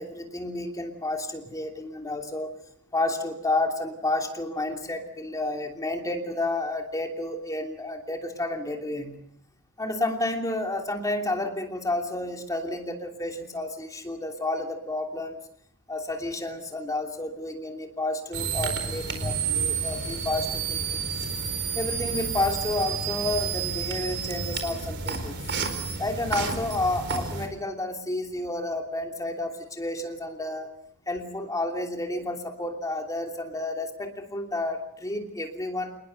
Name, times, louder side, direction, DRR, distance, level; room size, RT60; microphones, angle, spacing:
voice 1, 0.0-2.5 2.9-9.2 9.8-15.4 15.9-21.0 21.7-25.4 26.0-30.7 31.1-36.0, left 2 dB, 15° left, 3 dB, 3.0 m, -31 dB
sound 1, 18.3-27.5, right 5 dB, 50° right, 4.2 m, -30 dB
27.5 x 20.5 x 6.6 m, 0.70 s
head